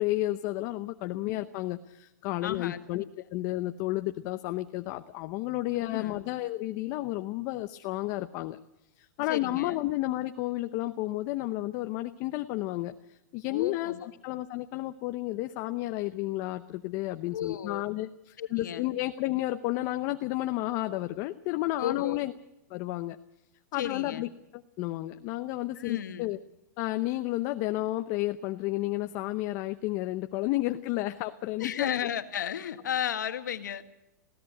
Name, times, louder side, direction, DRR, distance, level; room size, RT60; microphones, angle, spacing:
voice 1, 0.0-3.0 3.3-8.6 9.0-22.3 22.7-23.2 23.7-24.3 24.8-26.4 26.8-31.9, left 17 dB, 35° left, 9 dB, 0.7 m, -32 dB
voice 2, 2.4-2.8 5.9-6.2 9.3-9.8 13.5-14.1 17.3-17.9 18.4-18.9 21.8-22.2 23.7-24.3 25.8-26.3 31.6-33.8, left 9 dB, 85° left, 9 dB, 1.7 m, -34 dB
21.0 x 16.5 x 7.8 m, 0.90 s
hypercardioid pair, 150°, 10 cm